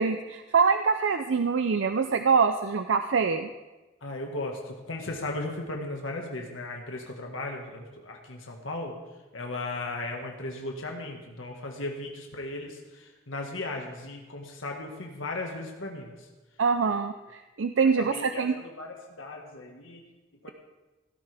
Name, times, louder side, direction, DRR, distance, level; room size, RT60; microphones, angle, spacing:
voice 1, 0.0-3.5 16.6-18.5, right 5 dB, 75° right, 8 dB, 0.5 m, -24 dB
voice 2, 4.0-8.9 9.3-16.3 16.8-17.0 17.8-20.0 20.4-20.5, left 2 dB, 90° left, 1 dB, 1.7 m, -36 dB
17.0 x 13.5 x 3.5 m, 1.1 s
head